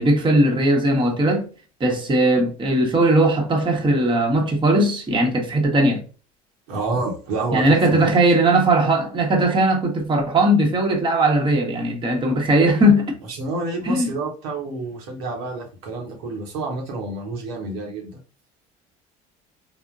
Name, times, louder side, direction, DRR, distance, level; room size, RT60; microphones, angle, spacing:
voice 1, 0.0-1.5 1.8-6.0 7.5-13.2 13.8-14.1, right 1 dB, 25° right, 0.9 m, -18 dB
voice 2, 6.7-8.2 13.3-18.2, right 3 dB, 85° right, 1.0 m, -29 dB
3.5 x 2.1 x 2.4 m
supercardioid pair, 85°, 19 cm